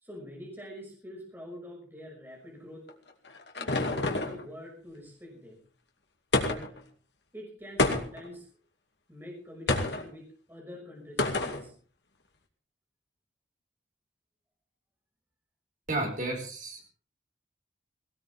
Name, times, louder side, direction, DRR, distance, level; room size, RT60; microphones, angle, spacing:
voice 1, 0.0-2.8 3.5-5.6 6.3-6.7 7.3-8.5 9.1-11.7, equal, 10° right, -1 dB, 5.9 m, -45 dB
sound 1, 2.9-4.4 6.3-6.8 7.8-8.3 9.7-10.1 11.2-11.6, left 2 dB, 65° left, 2.4 m, -28 dB
voice 2, 15.9-16.9, right 2 dB, 45° right, 3 dB, 4.6 m, -32 dB
18.5 x 18.5 x 3.6 m, 0.38 s
head